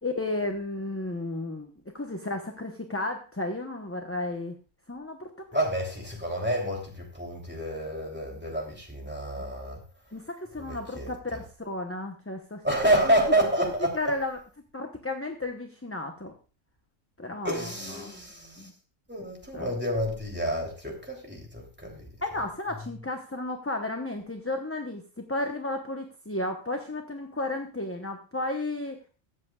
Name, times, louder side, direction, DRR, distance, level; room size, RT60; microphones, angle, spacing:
voice 1, 0.0-4.6 4.9-5.3 10.1-12.6 13.6-14.4 14.7-16.3 17.2-18.2 18.6-18.7 19.5-19.7 22.2-29.0, left 2 dB, 10° left, 0.9 m, -33 dB
voice 2, 5.5-9.8 10.6-11.1 12.6-14.0 17.4-18.7 19.1-22.1, right 1 dB, 10° right, 3.0 m, -28 dB
22.5 x 7.8 x 2.4 m
omnidirectional pair, 1.4 m